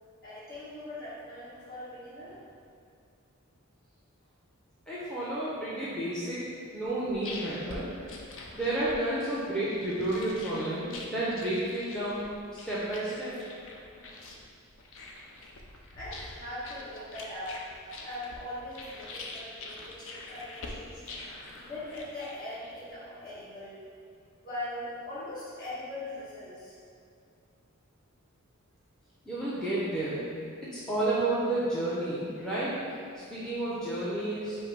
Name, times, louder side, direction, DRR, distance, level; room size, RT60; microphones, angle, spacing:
voice 1, 0.2-2.4 5.1-5.2 13.9-14.1 15.9-17.6 18.0-21.0 21.5-23.8 24.4-26.8 33.4-33.5, left 1 dB, 45° left, -10 dB, 1.4 m, -41 dB
voice 2, 4.9-6.4 6.7-7.8 8.5-13.4 29.3-30.2 30.7-32.7 33.3-34.6, right 1 dB, 5° left, -10 dB, 0.6 m, -31 dB
sound 1, 6.8-22.9, left 2 dB, 60° left, 0.5 m, -45 dB
5.3 x 2.0 x 4.5 m, 2.3 s
head